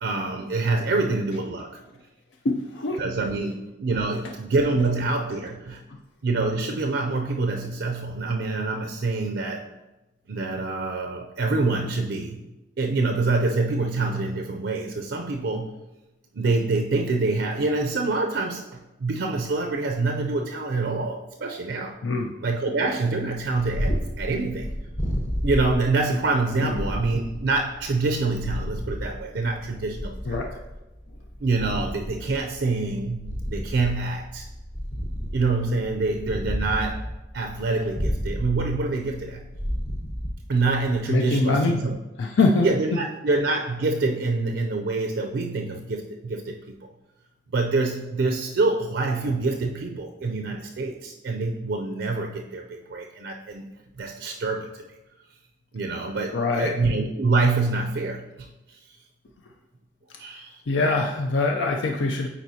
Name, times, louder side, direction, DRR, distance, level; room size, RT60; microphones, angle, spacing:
voice 1, 0.0-1.8 3.0-5.8 6.2-9.7 10.3-12.4 12.8-15.7 16.3-22.0 22.4-24.7 25.4-30.4 31.4-34.5 35.3-37.1 37.3-39.4 40.5-42.0 42.6-46.8 47.5-53.7 54.0-54.8 55.7-58.8 60.2-60.6, right 3 dB, 65° right, 3 dB, 0.5 m, -26 dB
voice 2, 2.4-3.0 22.0-22.3 26.6-26.9 30.3-30.6 41.1-41.8 42.2-42.7 56.3-56.7 60.1-60.2 60.7-62.3, left 3 dB, 70° left, 2 dB, 0.5 m, -23 dB
Purr, 23.5-41.0, equal, 40° left, 1.0 m, -32 dB
9.0 x 4.2 x 2.8 m, 1.0 s
head